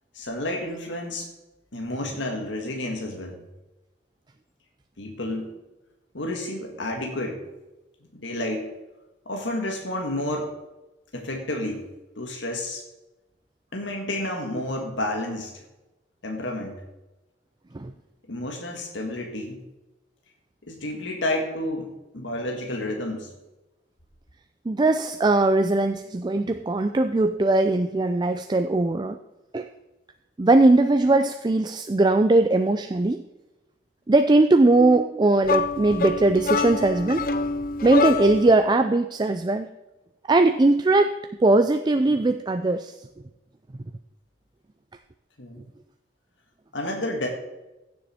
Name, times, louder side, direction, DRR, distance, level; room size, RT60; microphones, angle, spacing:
voice 1, 0.1-1.3 1.7-3.4 5.0-5.5 6.1-7.4 8.1-8.7 9.2-10.5 11.1-11.9 12.2-12.8 13.7-15.6 16.2-16.7 18.3-19.6 20.6-21.9 22.1-23.3 45.4-45.6 46.7-47.3, left 1 dB, 90° left, 1 dB, 1.7 m, -30 dB
voice 2, 24.7-29.2 29.5-29.7 30.4-33.2 34.1-37.3 37.8-39.7 40.3-41.1 41.4-43.0, right 2 dB, 25° right, 8 dB, 0.4 m, -20 dB
sound 1, 35.4-38.6, left 4 dB, 50° left, 0.7 m, -26 dB
15.5 x 7.0 x 4.3 m, 1.0 s
head